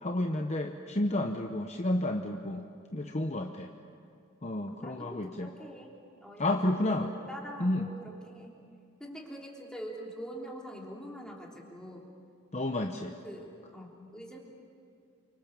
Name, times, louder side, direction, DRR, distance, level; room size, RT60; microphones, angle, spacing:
voice 1, 0.0-2.6 2.9-3.7 4.4-5.5 6.4-7.1 7.6-7.9 12.5-13.1, left 1 dB, 30° left, 4 dB, 0.9 m, -31 dB
voice 2, 4.5-5.9 6.2-8.6 9.0-12.1 13.2-14.4, equal, 5° left, -2 dB, 3.3 m, -44 dB
29.0 x 25.0 x 7.2 m, 2.4 s
head